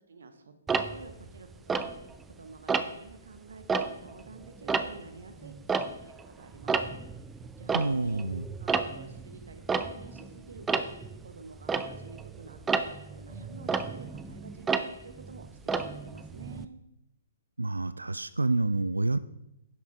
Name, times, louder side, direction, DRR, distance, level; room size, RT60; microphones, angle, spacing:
voice 1, 0.1-0.5 0.9-1.9 2.3-7.0 7.3-8.3 8.6-16.7, right 4 dB, 65° right, 8 dB, 1.1 m, -49 dB
Tick-tock, 0.7-2.3 2.7-3.1 3.5-6.3 6.5-16.6, right 5 dB, 10° right, 0.5 m, -32 dB
voice 2, 7.7-8.4 17.6-19.2, right 2 dB, 80° right, 15 dB, 0.3 m, -28 dB
10.5 x 7.2 x 3.9 m, 0.86 s
figure-of-eight pair, 125°, 0 cm